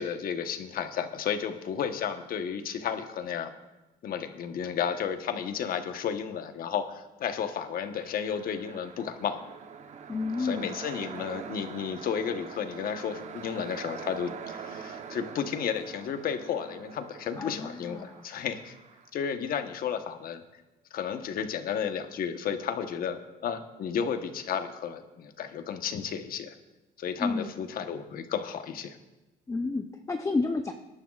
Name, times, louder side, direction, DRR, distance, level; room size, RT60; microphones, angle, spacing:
voice 1, 0.0-3.5 4.0-9.4 10.4-18.7 19.1-20.4 20.9-26.5 27.0-29.0, left 7 dB, 60° left, 7 dB, 1.1 m, -33 dB
sound 1, 7.7-19.1, right 6 dB, 45° right, 1.0 m, -44 dB
voice 2, 10.1-10.8 17.4-18.2 27.2-27.5 29.5-30.7, left 3 dB, 20° left, 5 dB, 0.6 m, -30 dB
21.5 x 11.5 x 2.4 m, 1.0 s
cardioid pair, 110°, 17 cm